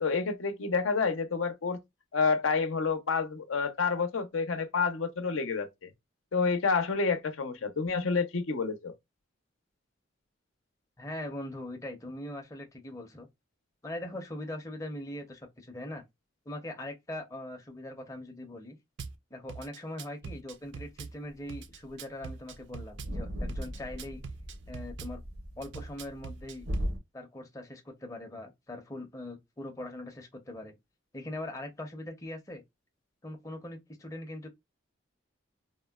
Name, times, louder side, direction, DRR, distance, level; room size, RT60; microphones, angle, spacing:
voice 1, 0.0-1.8 2.1-5.7 6.3-8.9, left 4 dB, 85° left, 0.6 m, -29 dB
voice 2, 11.0-13.3 13.8-16.0 16.5-18.8 19.3-24.2 24.7-25.2 25.6-26.7 27.1-30.8 31.1-32.6 33.2-34.5, left 1 dB, 15° left, 0.5 m, -41 dB
Drum kit / Bass drum, 19.0-19.2 19.5-21.1 21.5-23.1 23.5-25.1 25.6-26.9, right 5 dB, 65° right, 0.4 m, -42 dB
sound 1, 21.3-21.4 21.7-21.9 22.2-22.3 22.5-27.0, equal, 85° right, 0.9 m, -38 dB
3.5 x 2.1 x 2.2 m
head